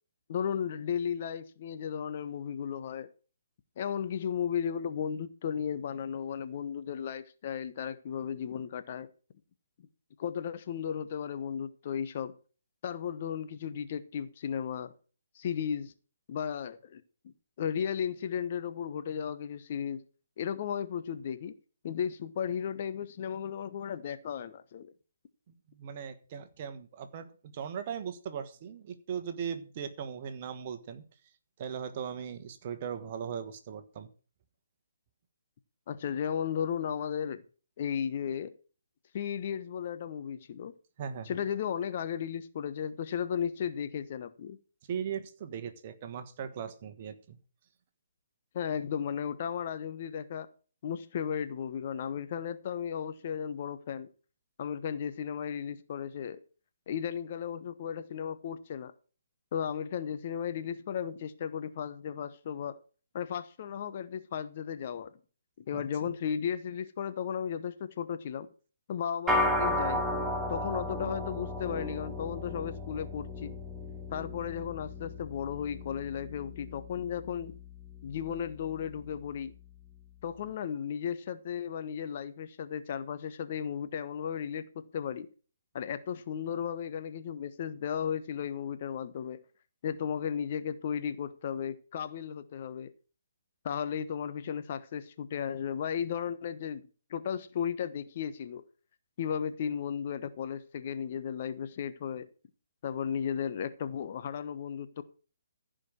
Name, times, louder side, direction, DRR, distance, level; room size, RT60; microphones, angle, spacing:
voice 1, 0.3-3.1 3.8-9.1 10.2-12.3 12.8-14.9 15.3-15.9 16.3-17.0 17.6-20.0 20.4-21.5 21.8-24.9 35.9-37.4 37.8-38.5 39.1-40.7 41.3-44.6 48.5-50.5 50.8-54.1 54.6-56.4 56.9-58.9 59.5-62.8 63.1-65.2 65.7-68.5 68.9-70.0 70.5-73.6 74.1-77.5 78.0-79.5 80.2-85.3 85.7-89.4 89.8-92.9 93.6-96.8 97.1-98.6 99.2-102.3 102.8-105.0, left 8 dB, 45° left, 1.1 m, -35 dB
voice 2, 25.5-31.0 31.6-34.1 41.0-41.4 44.9-47.4 65.7-65.8, right 7 dB, 40° right, 1.4 m, -39 dB
sound 1, 69.3-78.8, left 1 dB, 10° right, 1.3 m, -34 dB
15.0 x 5.1 x 6.3 m
figure-of-eight pair, 135°, 0 cm